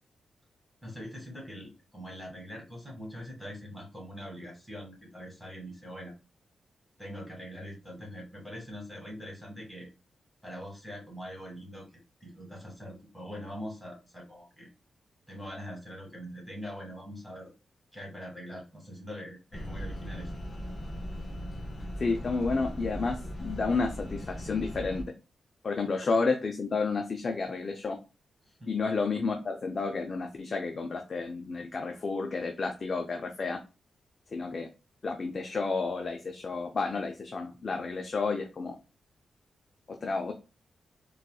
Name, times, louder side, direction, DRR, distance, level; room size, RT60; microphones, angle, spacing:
voice 1, 0.8-6.1 7.0-9.9 10.4-11.9 12.2-14.7 15.3-17.5 17.9-20.3 28.4-28.7, equal, 5° left, -3 dB, 1.9 m, -43 dB
sound 1, 19.5-25.0, equal, 30° left, 1.2 m, -38 dB
voice 2, 22.0-25.1 25.6-28.0 28.7-33.6 34.3-34.7 35.0-38.7 39.9-40.3, left 4 dB, 50° left, 4 dB, 0.4 m, -31 dB
4.0 x 2.3 x 2.3 m, 0.30 s
cardioid pair, 75°, 0 cm